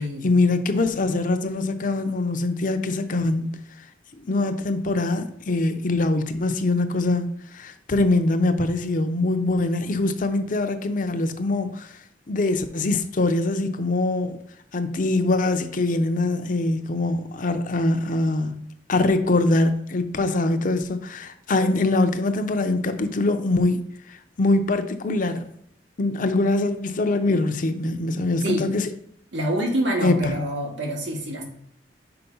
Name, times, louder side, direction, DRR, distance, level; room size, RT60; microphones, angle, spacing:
voice 1, 0.0-3.6 4.2-12.0 12.3-14.4 14.7-18.6 18.9-25.4 26.0-28.9 30.0-30.3, left 2 dB, 45° left, 0.6 m, -23 dB
voice 2, 29.3-31.4, equal, 90° right, 2.0 m, -26 dB
5.8 x 4.5 x 5.4 m
head